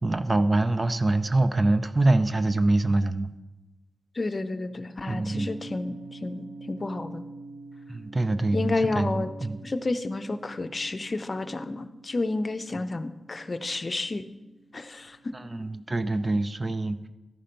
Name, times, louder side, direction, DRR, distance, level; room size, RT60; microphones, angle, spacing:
voice 1, 0.0-3.3 5.1-5.5 7.9-9.1 9.4-9.6 15.3-17.1, right 2 dB, 35° right, 11 dB, 0.5 m, -24 dB
voice 2, 4.1-7.2 8.5-9.3 9.6-14.2 14.7-15.3, left 2 dB, 45° left, 10 dB, 0.6 m, -31 dB
sound 1, 5.3-15.5, right 3 dB, 70° right, 0.8 m, -46 dB
13.0 x 5.7 x 5.2 m, 1.1 s
cardioid pair, 70°, 0 cm